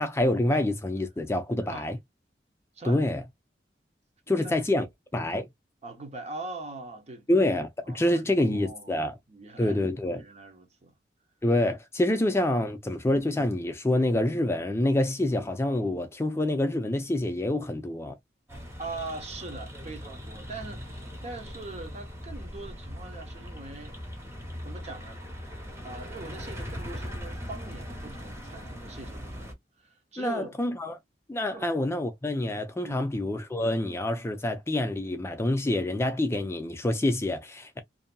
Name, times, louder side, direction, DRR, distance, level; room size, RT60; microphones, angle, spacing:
voice 1, 0.0-2.0 2.8-3.2 4.3-4.8 5.1-5.5 7.3-9.2 9.6-10.2 11.4-18.2 30.2-31.0 31.3-37.8, left 1 dB, 15° left, 0.4 m, -27 dB
voice 2, 4.3-4.9 5.8-7.3 7.8-9.8 10.1-10.9 18.8-24.0 24.6-25.2 25.8-30.5 31.5-31.7 32.8-33.2, right 3 dB, 40° right, 0.9 m, -42 dB
sound 1, 18.5-29.5, equal, 15° right, 1.0 m, -40 dB
2.7 x 2.6 x 2.2 m
head